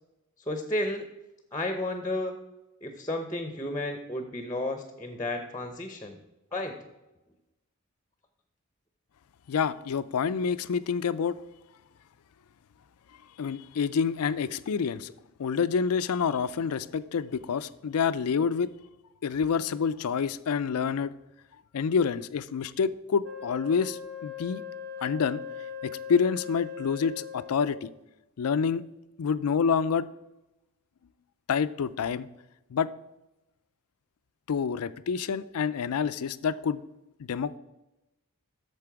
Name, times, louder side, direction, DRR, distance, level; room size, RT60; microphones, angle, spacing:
voice 1, 0.5-1.0 1.5-2.4 2.8-6.2 6.5-6.8, left 1 dB, 15° left, 6 dB, 0.6 m, -32 dB
voice 2, 9.5-11.4 13.4-15.1 15.4-18.7 19.2-21.1 21.7-24.6 25.0-25.4 25.8-27.9 28.4-28.8 29.2-30.0 31.5-32.3 32.7-32.9 34.5-36.8 37.3-37.6, left 6 dB, 85° left, 16 dB, 0.4 m, -27 dB
Wind instrument woodwind instrument, 23.2-27.8, left 7 dB, 70° right, 1.2 m, -40 dB
8.6 x 6.7 x 4.7 m, 0.96 s
head